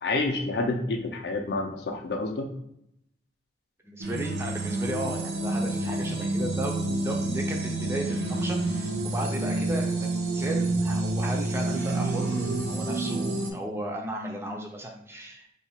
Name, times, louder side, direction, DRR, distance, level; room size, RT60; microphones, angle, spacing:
voice 1, 0.0-2.5, left 2 dB, 60° left, 4 dB, 0.4 m, -28 dB
voice 2, 3.8-15.5, right 1 dB, 15° right, 1 dB, 0.4 m, -35 dB
sound 1, 4.0-13.5, right 2 dB, 60° right, 0.6 m, -28 dB
2.7 x 2.3 x 4.1 m, 0.76 s
head